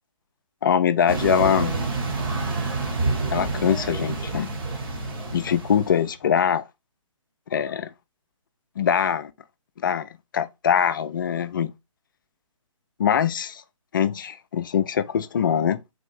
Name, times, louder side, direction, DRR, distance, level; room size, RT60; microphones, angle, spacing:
voice 1, 0.6-1.7 3.3-4.5 5.3-6.7 7.5-7.9 8.8-9.3 9.8-11.7 13.0-13.6 13.9-15.8, left 8 dB, 40° left, 0.4 m, -23 dB
sound 1, 1.1-6.1, right 3 dB, 40° right, 1.3 m, -28 dB
4.2 x 2.6 x 4.8 m
figure-of-eight pair, 135°, 17 cm